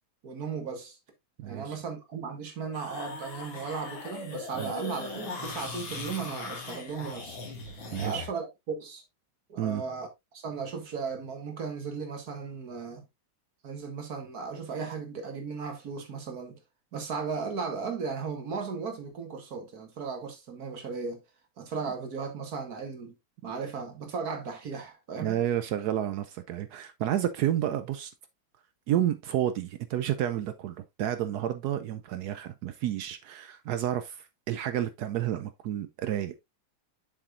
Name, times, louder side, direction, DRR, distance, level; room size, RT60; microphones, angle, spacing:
voice 1, 0.2-1.0 1.5-7.4 8.0-9.0 9.5-10.1 10.3-13.0 13.6-16.6 16.9-21.2 21.6-23.1 23.4-25.4, right 5 dB, 50° right, 1.9 m, -36 dB
voice 2, 1.4-1.8 4.6-4.7 7.9-8.3 9.6-9.8 25.2-28.1 28.9-36.4, right 11 dB, 85° right, 0.8 m, -30 dB
sound 1, 2.7-8.3, left 4 dB, 70° left, 2.8 m, -39 dB
7.2 x 6.9 x 2.5 m
omnidirectional pair, 2.3 m